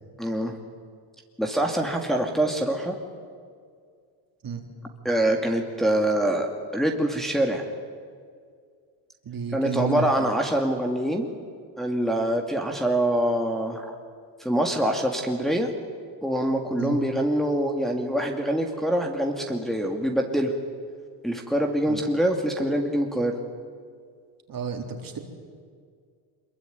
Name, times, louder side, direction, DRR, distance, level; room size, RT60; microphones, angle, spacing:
voice 1, 0.2-0.6 1.4-2.9 5.0-7.6 9.5-11.3 11.8-13.9 14.4-15.7 16.2-20.5 21.2-23.4, right 1 dB, ahead, 1 dB, 2.5 m, -25 dB
voice 2, 9.2-10.3 16.7-17.0 21.9-22.0 24.5-25.2, right 4 dB, 45° right, 3 dB, 4.0 m, -31 dB
24.0 x 22.0 x 9.4 m, 2.1 s
cardioid pair, 105°, 49 cm